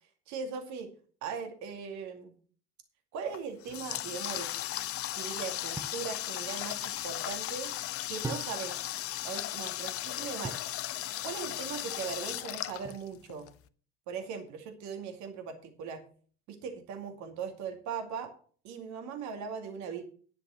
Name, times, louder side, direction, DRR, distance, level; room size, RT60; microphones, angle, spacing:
voice 1, 0.3-0.9 1.2-2.3 3.1-4.5 5.1-7.7 8.1-8.8 9.2-10.6 11.2-13.5 14.1-16.0 16.5-18.3 18.6-20.0, right 6 dB, 55° right, 7 dB, 2.3 m, -39 dB
Water tap faucet, 3.3-13.5, left 14 dB, 40° left, 0.7 m, -36 dB
sound 1, 5.8-6.1 8.2-8.9 10.4-10.8 12.8-13.4, right 3 dB, 10° right, 0.8 m, -41 dB
10.0 x 7.5 x 6.4 m, 0.43 s
figure-of-eight pair, 60°, 34 cm